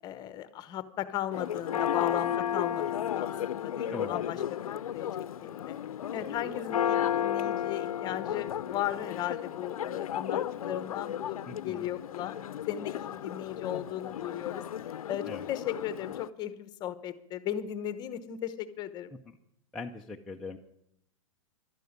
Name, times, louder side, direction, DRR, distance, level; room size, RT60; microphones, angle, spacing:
voice 1, 0.0-5.8 6.1-12.4 12.7-14.6 15.1-19.1, left 11 dB, 25° left, 14 dB, 0.9 m, -36 dB
Church bell, 1.3-16.3, left 10 dB, 80° left, 0.6 m, -33 dB
voice 2, 11.5-11.9 15.2-15.5 19.3-19.4 19.7-20.6, left 3 dB, ahead, -1 dB, 0.5 m, -41 dB
12.0 x 9.2 x 9.4 m, 0.79 s
hypercardioid pair, 145°, 18 cm